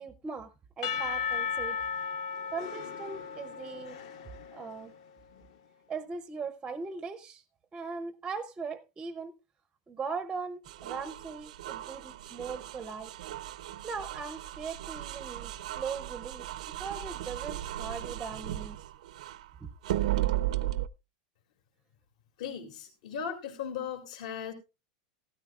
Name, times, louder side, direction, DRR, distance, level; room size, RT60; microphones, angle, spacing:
voice 1, 0.0-1.8 2.5-4.0 4.5-4.9 5.9-7.4 7.7-9.3 9.9-13.1 13.8-16.5 16.8-18.8 19.6-19.7, right 5 dB, 15° right, 0.5 m, -39 dB
Percussion / Church bell, 0.8-5.0, left 6 dB, 60° left, 0.9 m, -35 dB
sound 1, 10.7-19.4 19.8-20.9, right 14 dB, 90° right, 0.5 m, -35 dB
voice 2, 22.4-24.5, left 7 dB, 75° left, 2.3 m, -37 dB
16.0 x 13.0 x 2.3 m
supercardioid pair, 165°, 4 cm